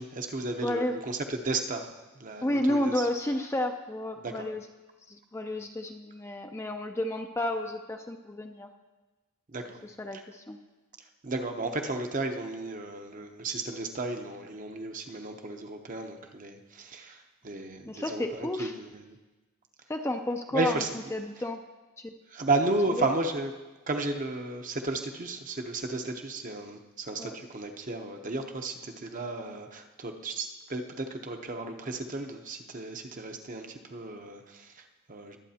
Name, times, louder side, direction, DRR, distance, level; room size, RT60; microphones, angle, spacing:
voice 1, 0.0-3.1 4.2-4.5 9.5-9.8 10.1-10.2 11.0-19.2 20.5-20.9 22.3-23.5 23.9-35.4, right 2 dB, 40° right, 5 dB, 0.8 m, -34 dB
voice 2, 0.6-1.0 2.4-4.6 5.1-8.7 9.8-10.6 17.9-18.7 19.9-20.8 21.1-21.6 22.0-22.1 23.0-23.1 27.2-27.4, left 1 dB, 15° left, 4 dB, 0.5 m, -31 dB
22.0 x 8.3 x 2.8 m, 1.2 s
head